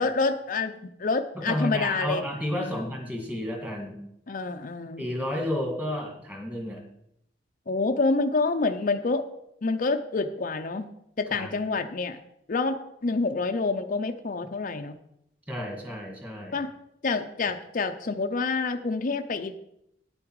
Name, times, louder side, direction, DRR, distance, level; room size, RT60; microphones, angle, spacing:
voice 1, 0.0-2.2 2.6-2.9 4.3-5.0 7.7-9.2 9.6-10.9 11.2-12.2 12.5-12.8 13.0-15.0 16.5-16.7 17.0-19.5, left 3 dB, 45° left, 6 dB, 0.5 m, -27 dB
voice 2, 1.4-4.0 5.0-6.8 11.4-11.5 15.5-16.6, left 1 dB, 10° right, 1 dB, 2.0 m, -31 dB
9.5 x 8.7 x 4.7 m, 0.79 s
head